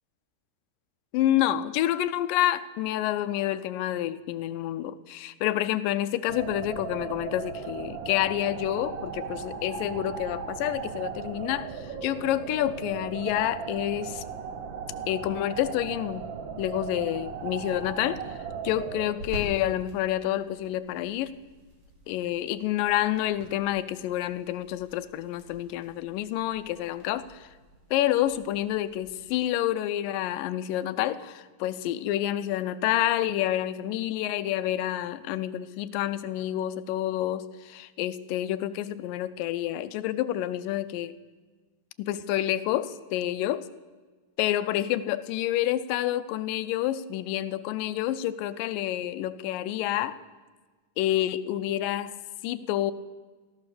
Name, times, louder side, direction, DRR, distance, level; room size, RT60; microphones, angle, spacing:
voice 1, 1.1-14.2 15.1-16.3 16.6-18.2 18.6-21.3 22.1-27.5 27.9-41.2 42.0-43.6 44.4-50.2 51.0-52.1 52.4-52.9, left 13 dB, 85° left, 14 dB, 2.3 m, -28 dB
sound 1, 6.3-19.1, right 6 dB, 80° right, 1.0 m, -37 dB
sound 2, 17.1-29.3, right 1 dB, 40° right, 4.0 m, -48 dB
16.0 x 13.0 x 6.8 m, 1.4 s
omnidirectional pair, 3.8 m